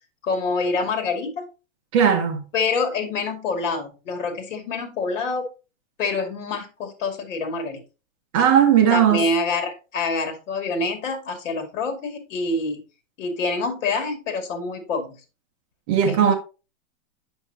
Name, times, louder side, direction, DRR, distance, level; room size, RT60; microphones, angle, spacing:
voice 1, 0.2-1.5 2.5-5.5 6.0-7.8 8.9-12.8 13.2-15.2 16.1-16.4, left 3 dB, 70° left, 2.4 m, -26 dB
voice 2, 1.9-2.4 8.3-9.3 15.9-16.3, right 8 dB, 25° right, 0.9 m, -17 dB
7.9 x 6.9 x 2.8 m
supercardioid pair, 180°, 38 cm